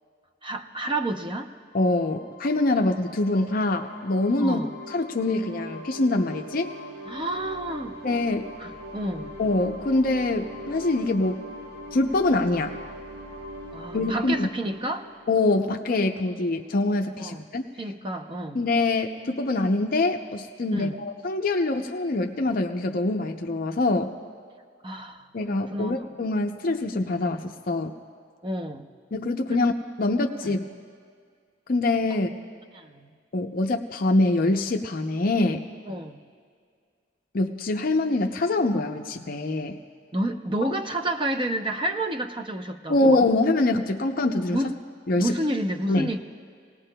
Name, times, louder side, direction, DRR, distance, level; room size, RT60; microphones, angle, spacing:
voice 1, 0.4-1.5 4.4-4.7 7.1-8.0 8.6-9.4 13.7-15.1 17.2-17.4 17.8-18.6 20.7-21.0 24.8-26.1 28.4-28.9 30.4-30.6 32.1-32.2 32.7-33.1 35.9-36.2 40.1-43.2 44.5-44.7 45.2-46.2, right 1 dB, 25° right, 6 dB, 0.7 m, -30 dB
voice 2, 1.7-4.6 4.9-6.7 8.0-8.5 9.4-11.4 11.9-12.8 13.9-14.5 15.3-17.7 18.5-24.1 25.3-28.0 29.1-29.7 30.0-30.6 31.7-32.3 33.3-35.6 37.3-39.8 42.9-44.6 45.1-45.3 45.9-46.1, left 2 dB, 50° left, 4 dB, 0.6 m, -24 dB
sound 1, 1.7-16.1, equal, 75° right, 3.5 m, -41 dB
26.5 x 18.5 x 2.2 m, 2.1 s
head